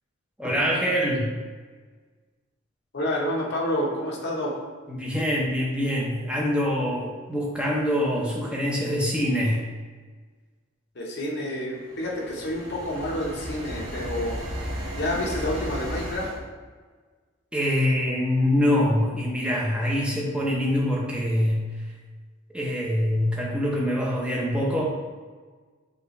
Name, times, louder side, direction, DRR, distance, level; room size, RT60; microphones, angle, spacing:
voice 1, 0.4-1.3 4.9-9.6 17.5-21.7 22.5-24.9, equal, 5° right, -3 dB, 0.6 m, -24 dB
voice 2, 2.9-4.6 10.9-14.4 15.0-16.3, left 1 dB, 55° left, -3 dB, 0.9 m, -29 dB
sound 1, 11.7-16.4, equal, 70° right, 1.2 m, -34 dB
5.5 x 2.4 x 3.1 m, 1.5 s
head